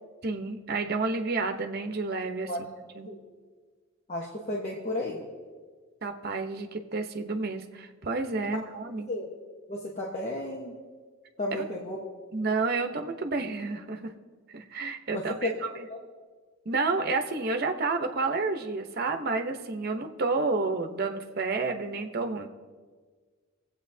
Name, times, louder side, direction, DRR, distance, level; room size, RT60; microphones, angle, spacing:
voice 1, 0.2-2.5 3.0-3.1 6.0-9.1 11.6-11.7 12.3-14.1 14.5-15.5 16.7-22.5, right 3 dB, 50° right, 5 dB, 0.8 m, -30 dB
voice 2, 4.1-5.2 8.5-8.6 9.1-9.3 9.7-10.7 11.4-12.0 15.1-15.6 15.9-16.0, left 1 dB, 35° left, -2 dB, 1.1 m, -33 dB
24.5 x 8.1 x 2.7 m, 1.5 s
head